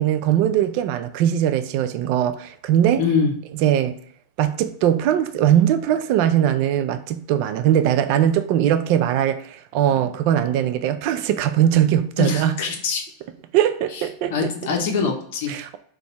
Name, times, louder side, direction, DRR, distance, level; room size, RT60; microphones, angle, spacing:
voice 1, 0.0-3.0 3.6-3.9 4.4-9.4 9.7-12.6 13.5-14.3 15.5-15.8, right 10 dB, 60° right, 0.3 m, -20 dB
voice 2, 3.0-3.3 12.2-13.0 13.9-14.0 14.3-15.5, left 5 dB, 65° left, 0.7 m, -23 dB
2.6 x 2.2 x 4.0 m
hypercardioid pair, 105°, 0 cm